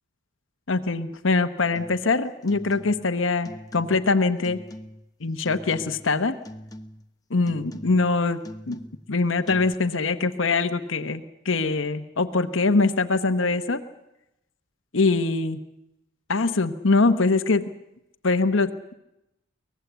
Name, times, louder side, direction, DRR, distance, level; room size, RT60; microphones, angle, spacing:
voice 1, 0.7-4.6 5.2-6.4 7.3-8.8 9.1-13.8 14.9-15.6 16.3-17.7 18.2-18.7, left 3 dB, 70° left, 8 dB, 1.0 m, -23 dB
sound 1, 1.8-2.1 2.4-3.1 3.4-4.1 4.4-5.1 5.5-6.2 6.4-7.1 7.5-8.1 8.4-9.1 9.5-9.7, equal, 15° left, 0.9 m, -42 dB
23.5 x 19.0 x 8.1 m, 0.90 s
head